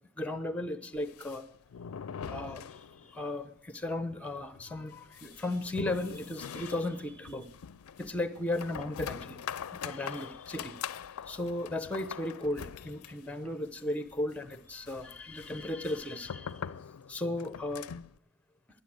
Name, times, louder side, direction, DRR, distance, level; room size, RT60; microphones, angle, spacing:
voice 1, 0.2-1.4 2.3-7.5 8.0-9.4 9.7-11.0 11.3-16.7 17.1-17.9, left 1 dB, 5° left, 11 dB, 0.8 m, -36 dB
sound 1, 0.9-3.3 3.6-3.7 4.0-4.1 4.5-18.2, left 7 dB, 85° left, 0.4 m, -43 dB
13.5 x 9.8 x 6.3 m, 0.63 s
head